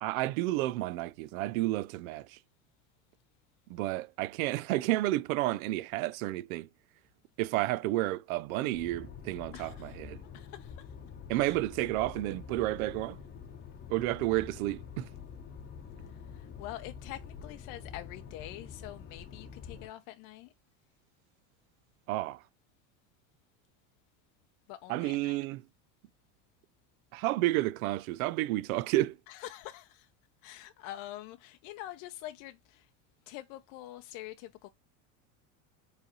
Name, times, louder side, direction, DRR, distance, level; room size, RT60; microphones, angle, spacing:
voice 1, 0.0-2.3 3.7-6.7 7.4-10.2 11.3-13.2 13.9-15.1 22.1-22.4 24.9-25.6 27.1-29.1, right 17 dB, 80° right, 0.5 m, -31 dB
sound 1, 8.7-19.9, left 7 dB, 25° left, 0.8 m, -47 dB
voice 2, 9.5-10.0 10.2-10.9 11.4-11.6 16.0-20.5 24.7-25.4 29.3-30.1 30.4-32.9 33.3-34.7, left 14 dB, 55° left, 0.6 m, -45 dB
4.8 x 3.3 x 2.9 m
supercardioid pair, 130°, 41 cm